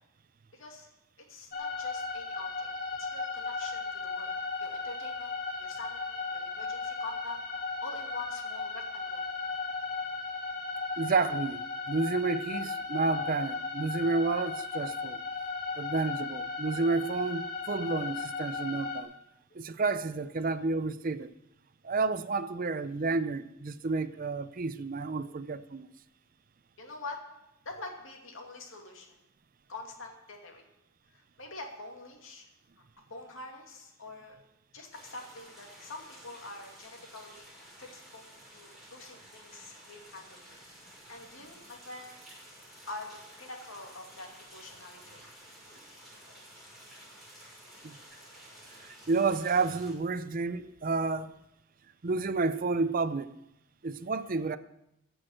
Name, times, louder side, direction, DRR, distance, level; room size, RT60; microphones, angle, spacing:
voice 1, 0.5-0.9 1.3-2.7 3.0-4.3 4.6-7.4 7.8-9.2 26.8-27.2 27.6-29.1 29.7-30.7 31.1-32.5 32.8-32.9 33.1-34.4 34.7-37.5 37.8-40.4 41.1-42.1 42.9-45.2, left 3 dB, 75° left, 2.5 m, -45 dB
sound 1, 1.5-19.0, left 4 dB, 45° left, 1.6 m, -36 dB
voice 2, 11.0-15.2 15.8-19.1 19.5-21.3 21.8-25.9 47.8-48.0 48.8-51.3 52.0-53.3 53.8-54.6, right 3 dB, 40° right, 0.5 m, -30 dB
sound 2, 34.9-49.9, equal, ahead, 6.3 m, -52 dB
15.0 x 6.3 x 7.8 m
head